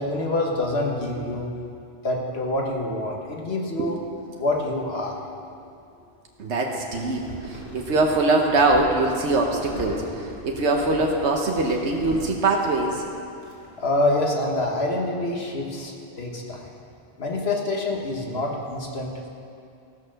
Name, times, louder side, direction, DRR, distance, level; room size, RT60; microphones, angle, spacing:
voice 1, 0.0-1.5 2.0-4.0 4.4-5.2 13.8-16.7 17.2-19.3, left 2 dB, 65° left, 0 dB, 1.6 m, -26 dB
sound 1, 5.2-6.1 6.7-14.5, equal, 50° left, 2.4 m, -41 dB
voice 2, 6.4-13.0, right 2 dB, 85° right, 1 dB, 1.2 m, -23 dB
15.5 x 6.5 x 6.4 m, 2.5 s
omnidirectional pair, 1.1 m